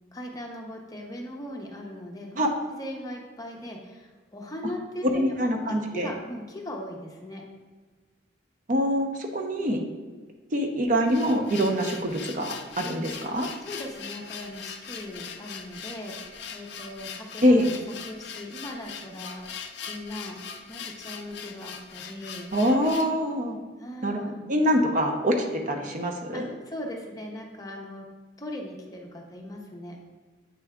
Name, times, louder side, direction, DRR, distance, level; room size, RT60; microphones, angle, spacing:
voice 1, 0.1-2.4 2.8-7.4 13.2-13.3 13.7-16.2 16.5-17.8 18.1-19.5 19.8-20.4 20.7-22.5 23.8-24.4 26.3-28.1 28.4-30.0, left 1 dB, 20° left, 1 dB, 0.6 m, -39 dB
voice 2, 5.0-6.1 8.7-9.8 10.5-13.5 17.4-17.7 22.5-23.6 24.0-26.5, equal, 45° right, 3 dB, 0.6 m, -24 dB
sound 1, 10.8-23.2, left 6 dB, 60° left, 0.5 m, -41 dB
8.1 x 3.4 x 3.5 m, 1.4 s
head